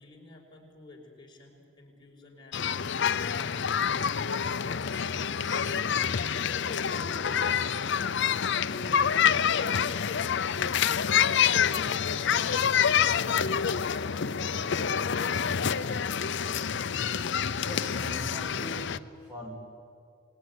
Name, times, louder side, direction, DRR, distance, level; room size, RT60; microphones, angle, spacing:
voice 1, 0.0-2.9 3.2-8.1 8.6-11.0 11.4-13.5 14.0-16.1, left 2 dB, 25° left, -1 dB, 4.8 m, -48 dB
sound 1, 2.5-19.0, left 7 dB, 60° left, 0.6 m, -27 dB
voice 2, 17.6-19.6, equal, 5° right, -3 dB, 3.0 m, -41 dB
27.0 x 20.5 x 9.7 m, 2.4 s
head